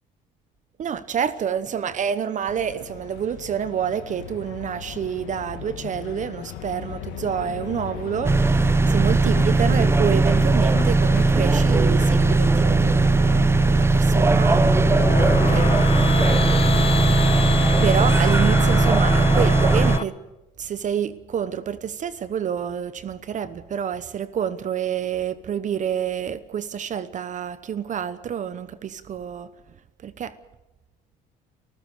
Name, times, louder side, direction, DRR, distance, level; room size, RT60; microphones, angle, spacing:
voice 1, 0.8-16.2 17.8-20.2 20.6-29.5 30.0-30.3, right 8 dB, 45° right, 1.0 m, -28 dB
sound 1, 2.5-15.8, left 10 dB, 80° left, 2.2 m, -35 dB
sound 2, 8.2-20.0, right 3 dB, 15° right, 0.7 m, -18 dB
sound 3, 14.4-20.0, left 5 dB, 35° left, 1.3 m, -26 dB
29.0 x 14.5 x 6.7 m
supercardioid pair, 90°, 18 cm